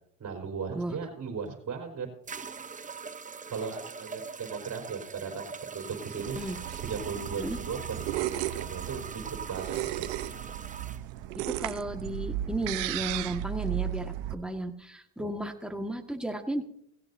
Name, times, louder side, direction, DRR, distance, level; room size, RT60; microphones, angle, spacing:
voice 1, 0.2-2.1 3.5-7.8 8.1-10.1 15.2-15.3, right 5 dB, 40° right, 1 dB, 4.3 m, -37 dB
sound 1, 1.5-1.6 2.3-11.0, right 5 dB, 20° right, 0.9 m, -42 dB
sound 2, 6.2-14.3, right 13 dB, 75° right, 1.0 m, -35 dB
voice 2, 11.5-16.6, right 1 dB, ahead, 4 dB, 1.8 m, -34 dB
17.5 x 16.5 x 2.8 m, 0.70 s
supercardioid pair, 90°, 42 cm